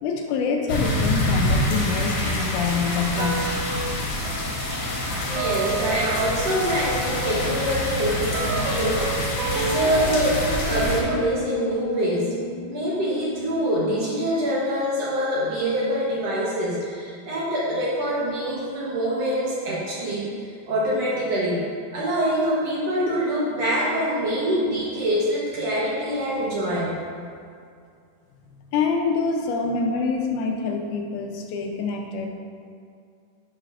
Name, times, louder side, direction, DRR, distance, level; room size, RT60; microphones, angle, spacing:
voice 1, 0.0-3.7 28.7-32.3, left 4 dB, 80° left, 2 dB, 2.0 m, -26 dB
sound 1, 0.7-11.0, left 1 dB, 60° left, 1.9 m, -26 dB
sound 2, 3.2-3.9 4.3-14.6, right 3 dB, 80° right, 2.2 m, -32 dB
voice 2, 5.3-12.3 12.7-21.6 21.9-26.9, equal, 60° right, -6 dB, 1.9 m, -25 dB
9.8 x 6.0 x 2.5 m, 2.3 s
omnidirectional pair, 3.7 m